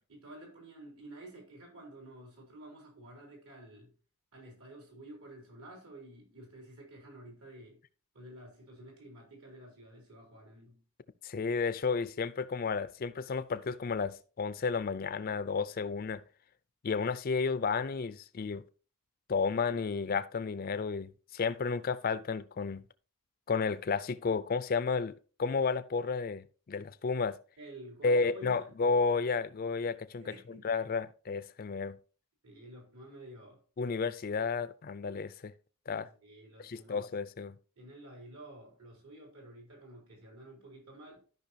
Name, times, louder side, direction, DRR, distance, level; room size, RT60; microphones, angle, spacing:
voice 1, 0.1-3.9 4.3-7.8 8.1-10.8 27.6-28.7 30.2-30.7 32.4-33.6 36.2-37.1 37.8-41.2, right 1 dB, 75° right, 3.9 m, -51 dB
voice 2, 11.2-16.2 16.8-18.6 19.3-22.8 23.5-27.4 28.0-32.0 33.8-35.5 35.9-36.1 36.6-37.6, left 4 dB, 40° left, 0.4 m, -32 dB
13.5 x 5.5 x 2.8 m
head